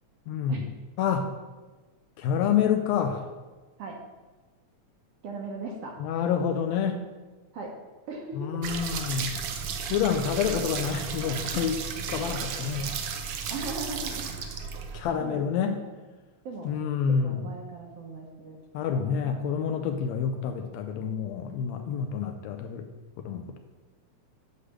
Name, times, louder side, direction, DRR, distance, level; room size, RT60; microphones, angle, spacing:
voice 1, 0.3-0.7 1.0-1.3 2.2-3.3 6.0-7.0 8.4-9.3 9.9-13.0 14.9-15.8 16.7-17.4 18.7-22.9 23.2-23.6, left 7 dB, 75° left, 6 dB, 1.7 m, -28 dB
voice 2, 5.2-5.9 7.5-7.7 8.1-8.8 13.5-14.2 15.2-15.8 16.4-16.7 17.1-18.6 18.9-19.4 19.9-20.0, right 3 dB, 65° right, 1 dB, 1.7 m, -39 dB
sound 1, 8.6-15.0, right 6 dB, 90° right, 1.2 m, -34 dB
9.7 x 3.2 x 6.5 m, 1.3 s
omnidirectional pair, 3.4 m